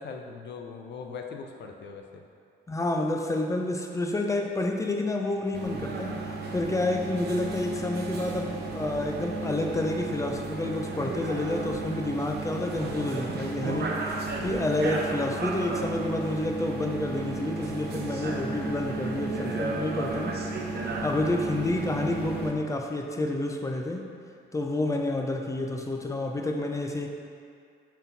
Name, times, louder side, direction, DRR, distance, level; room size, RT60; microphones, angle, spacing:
voice 1, 0.0-2.2, left 5 dB, 60° left, 3 dB, 0.7 m, -40 dB
voice 2, 2.7-6.2 6.5-20.4 20.8-24.1 24.5-27.1, left 2 dB, 15° left, 2 dB, 0.6 m, -29 dB
sound 1, 5.5-22.5, right 3 dB, 55° right, 0.8 m, -33 dB
5.9 x 4.3 x 4.1 m, 2.3 s
cardioid pair, 90°, 20 cm